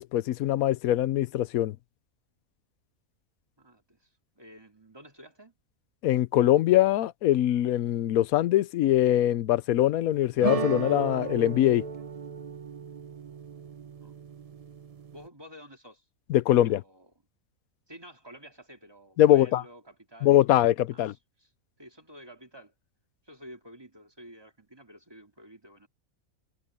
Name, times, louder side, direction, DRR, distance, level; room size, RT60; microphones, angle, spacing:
voice 1, 0.0-1.8 6.0-11.9 16.3-16.8 19.2-19.6 20.2-21.1, left 13 dB, 90° left, 1.1 m, -23 dB
voice 2, 3.6-5.5 14.0-14.1 15.1-16.1 16.5-17.1 17.9-20.4 20.9-21.5 21.8-22.7 23.2-25.9, equal, 15° right, 2.3 m, -50 dB
sound 1, 10.4-15.3, right 4 dB, 40° right, 0.5 m, -35 dB
omnidirectional pair, 1.5 m